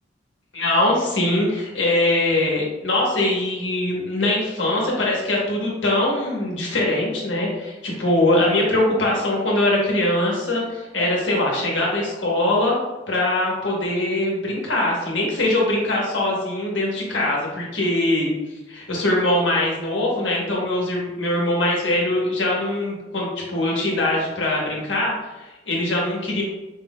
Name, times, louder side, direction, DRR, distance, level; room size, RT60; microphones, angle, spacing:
voice 1, 0.5-12.7 13.1-18.3 18.7-26.4, left 1 dB, 90° left, -3 dB, 1.4 m, -22 dB
4.9 x 3.7 x 2.5 m, 1.1 s
head